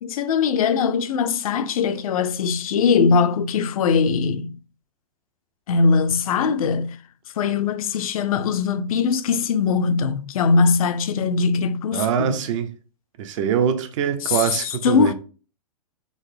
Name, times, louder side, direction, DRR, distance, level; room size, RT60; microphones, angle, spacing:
voice 1, 0.0-4.5 5.7-7.0 7.4-12.4 14.2-15.1, left 5 dB, 70° left, 0.4 m, -21 dB
voice 2, 11.9-12.7 13.2-15.1, right 8 dB, 55° right, 0.6 m, -23 dB
3.8 x 2.0 x 3.2 m
hypercardioid pair, 125°, 19 cm